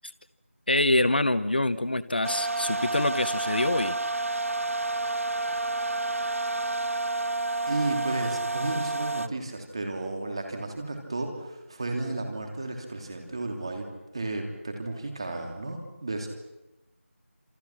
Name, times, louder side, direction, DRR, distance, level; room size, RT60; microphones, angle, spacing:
voice 1, 0.7-4.0, left 1 dB, 45° left, 14 dB, 0.8 m, -25 dB
sound 1, 2.2-9.3, right 2 dB, 75° right, 0.8 m, -29 dB
voice 2, 7.7-13.8 14.1-16.3, right 2 dB, 20° right, 3 dB, 3.0 m, -33 dB
27.5 x 27.0 x 6.0 m, 0.98 s
figure-of-eight pair, 175°, 7 cm